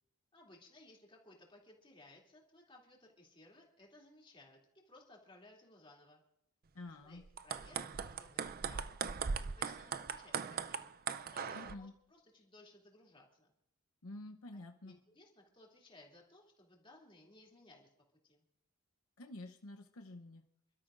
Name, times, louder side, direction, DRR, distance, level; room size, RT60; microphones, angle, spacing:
voice 1, 0.3-4.6 4.8-6.2 7.0-10.9 11.3-13.5 14.5-17.9 18.2-18.4, left 2 dB, 25° left, -1 dB, 2.8 m, -61 dB
voice 2, 6.7-7.2 11.5-11.9 14.0-15.0 19.2-20.4, left 2 dB, 75° left, 4 dB, 0.9 m, -49 dB
sound 1, 7.2-11.8, right 6 dB, 45° right, 0.5 m, -39 dB
29.5 x 13.0 x 2.6 m, 0.76 s
head